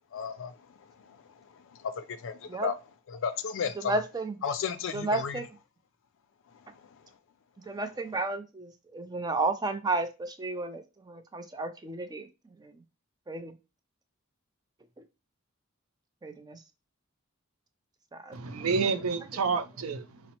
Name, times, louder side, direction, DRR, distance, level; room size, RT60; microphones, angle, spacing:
voice 1, 0.1-0.5 1.8-2.8 3.1-3.9 4.4-5.4, left 6 dB, 65° left, 0.4 m, -33 dB
voice 2, 3.8-4.4 4.9-5.5 7.7-12.3 13.3-13.5 16.2-16.6 18.1-18.4, right 2 dB, 20° right, 0.4 m, -32 dB
voice 3, 18.3-20.4, right 5 dB, 85° right, 0.5 m, -29 dB
5.1 x 2.0 x 2.9 m
head